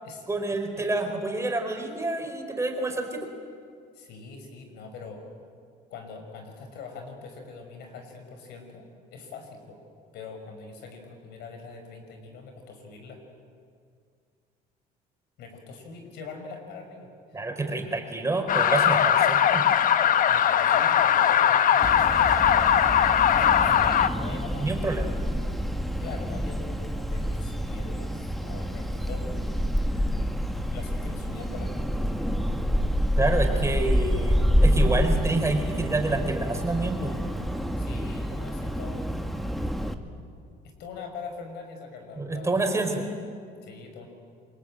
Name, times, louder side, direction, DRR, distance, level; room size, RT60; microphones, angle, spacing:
voice 1, 0.3-3.3 17.3-19.6 24.6-25.1 33.2-37.1 42.2-43.1, right 2 dB, 15° right, 4 dB, 4.1 m, -28 dB
voice 2, 3.9-5.2 5.9-9.8 10.1-13.2 15.4-17.1 20.3-22.7 23.2-24.8 26.0-29.3 30.7-31.7 37.8-39.4 40.8-42.5 43.6-44.1, left 4 dB, 80° left, 5 dB, 5.6 m, -42 dB
sound 1, 18.5-24.1, left 9 dB, 55° left, 1.0 m, -20 dB
sound 2, 21.8-39.9, equal, ahead, 1.6 m, -27 dB
28.0 x 22.5 x 8.9 m, 2.3 s
cardioid pair, 110°, 17 cm